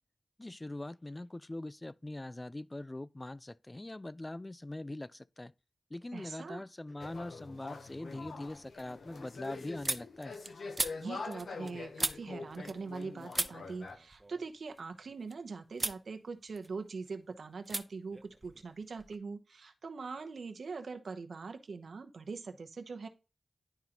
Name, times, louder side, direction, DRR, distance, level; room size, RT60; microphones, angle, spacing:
voice 1, 0.4-5.5 5.9-10.3, left 1 dB, 25° left, 0.3 m, -42 dB
voice 2, 6.1-6.6 11.0-23.1, right 4 dB, 80° right, 0.8 m, -42 dB
sound 1, 7.0-14.0, left 4 dB, 90° left, 0.8 m, -45 dB
sound 2, 7.1-7.6 8.0-13.0 13.3-15.3 15.7-16.0 16.4-17.1 17.6-17.8 18.1-19.2, right 2 dB, 30° right, 0.6 m, -39 dB
11.0 x 3.8 x 2.9 m
cardioid pair, 50°, 0 cm